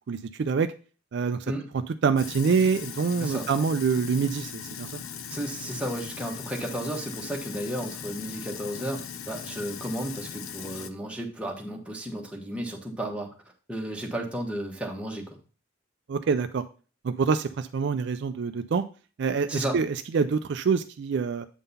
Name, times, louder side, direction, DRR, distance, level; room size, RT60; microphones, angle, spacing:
voice 1, 0.1-0.7 1.1-5.0 16.1-16.6 17.0-18.8 19.2-21.5, right 5 dB, 55° right, 10 dB, 0.3 m, -26 dB
Sink (filling or washing), 2.2-10.9, left 7 dB, 80° left, 0.6 m, -39 dB
voice 2, 5.3-13.3 13.7-15.4 19.5-19.8, right 1 dB, 5° right, 0 dB, 1.1 m, -33 dB
8.0 x 3.8 x 5.5 m, 0.37 s
head